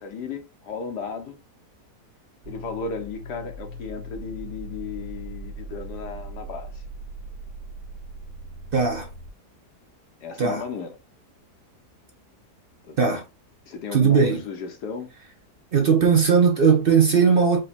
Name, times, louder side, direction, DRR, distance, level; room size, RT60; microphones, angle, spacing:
voice 1, 0.0-1.4 2.5-6.8 10.2-11.0 12.8-13.2 13.7-15.1, left 5 dB, 80° left, 1.3 m, -35 dB
sound 1, 2.4-9.3, right 1 dB, 80° right, 1.6 m, -39 dB
voice 2, 8.7-9.1 10.4-10.6 13.0-13.2 13.9-14.4 15.7-17.6, right 6 dB, 50° right, 0.7 m, -18 dB
5.1 x 2.2 x 4.2 m
omnidirectional pair, 1.8 m